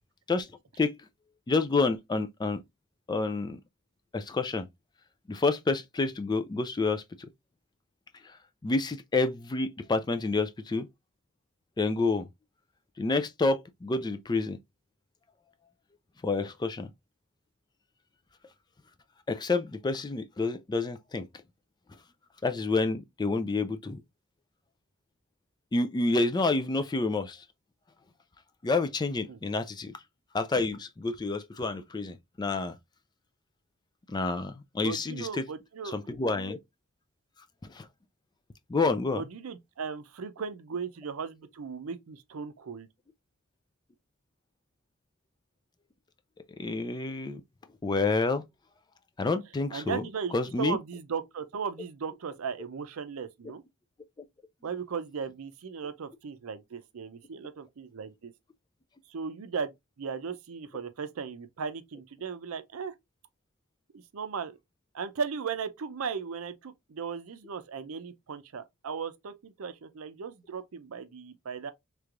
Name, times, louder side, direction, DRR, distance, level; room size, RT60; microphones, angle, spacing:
voice 1, 1.5-2.6 3.1-3.6 4.1-4.7 5.3-7.3 8.6-10.9 11.8-12.3 13.0-14.6 16.2-16.9 19.3-21.3 22.4-24.0 25.7-27.4 28.6-29.9 30.3-32.8 34.1-35.5 35.8-36.6 37.7-37.9 38.7-39.2 46.6-47.4 47.8-48.4 49.2-50.0 50.3-50.8, left 3 dB, 20° left, 0.3 m, -28 dB
voice 2, 34.8-36.0 39.1-42.9 49.7-53.6 54.6-58.3 59.1-59.7 60.0-62.9 63.9-64.6 64.9-71.7, right 6 dB, 80° right, 0.5 m, -37 dB
3.3 x 3.2 x 2.4 m
head